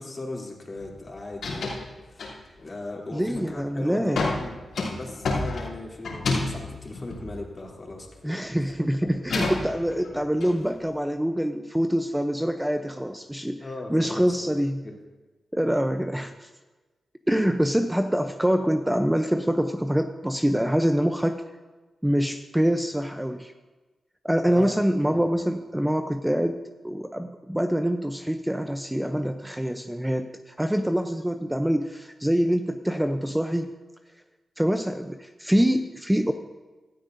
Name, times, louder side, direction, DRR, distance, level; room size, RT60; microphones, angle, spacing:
voice 1, 0.0-2.3 2.6-4.6 4.9-8.6 9.0-9.1 13.6-14.3 14.8-15.0 24.5-24.8 25.1-25.2, left 2 dB, 40° left, -2 dB, 3.1 m, -38 dB
sound 1, 0.8-1.0 1.3-1.9 2.2-2.7 3.2-3.6 4.2-8.2 8.5-10.5, left 3 dB, 90° left, 3.1 m, -30 dB
voice 2, 3.1-4.3 8.2-14.8 15.5-16.5 17.3-21.4 22.0-23.5 24.2-33.7 34.6-36.3, equal, 5° right, 7 dB, 0.6 m, -25 dB
17.0 x 13.0 x 2.7 m, 1.2 s
cardioid pair, 60°, 0 cm